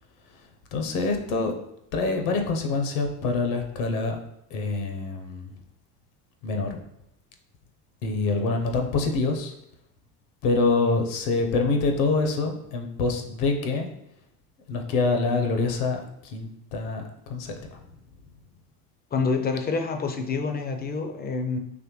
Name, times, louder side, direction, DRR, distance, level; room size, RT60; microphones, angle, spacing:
voice 1, 0.7-1.5 1.9-4.2 4.5-5.6 6.4-6.8 8.0-9.5 10.4-13.9 14.7-17.8, left 3 dB, 70° left, 4 dB, 0.9 m, -26 dB
voice 2, 19.1-21.6, left 4 dB, 20° left, 5 dB, 0.5 m, -27 dB
4.1 x 3.1 x 3.1 m, 0.82 s
hypercardioid pair, 70°, 47 cm